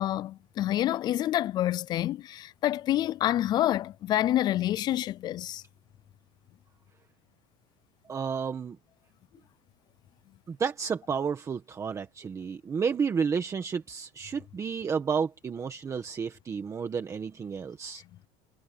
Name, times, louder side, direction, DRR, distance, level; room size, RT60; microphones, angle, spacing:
voice 1, 0.0-5.6, left 13 dB, 25° left, 0.3 m, -27 dB
voice 2, 8.1-8.8 10.5-18.0, right 6 dB, 20° right, 1.5 m, -31 dB
cardioid pair, 165°, 16 cm